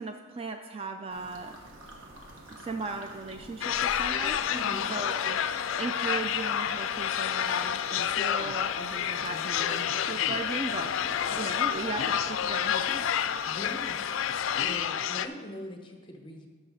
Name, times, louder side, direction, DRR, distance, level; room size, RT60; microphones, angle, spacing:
voice 1, 0.0-1.6 2.6-4.4 4.9-5.4 5.8-13.3, right 3 dB, 25° right, 6 dB, 0.3 m, -37 dB
sound 1, 1.1-14.9, right 1 dB, 70° right, 1.5 m, -48 dB
sound 2, 3.6-15.3, left 9 dB, 70° left, 0.3 m, -29 dB
voice 2, 4.5-4.8 9.1-9.5 10.9-11.4 13.4-14.0 14.6-16.5, left 1 dB, 25° left, 4 dB, 1.0 m, -42 dB
12.5 x 5.9 x 4.0 m, 1.5 s
head